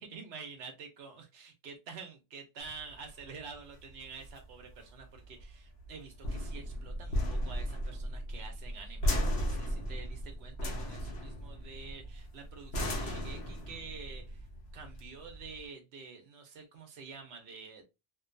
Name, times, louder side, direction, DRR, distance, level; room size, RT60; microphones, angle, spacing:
voice 1, 0.1-14.5 14.7-17.8, right 5 dB, 90° right, 3 dB, 0.9 m, -48 dB
sound 1, 2.6-15.6, equal, 90° left, 1.0 m, -36 dB
2.5 x 2.2 x 2.5 m, 0.26 s
omnidirectional pair, 1.0 m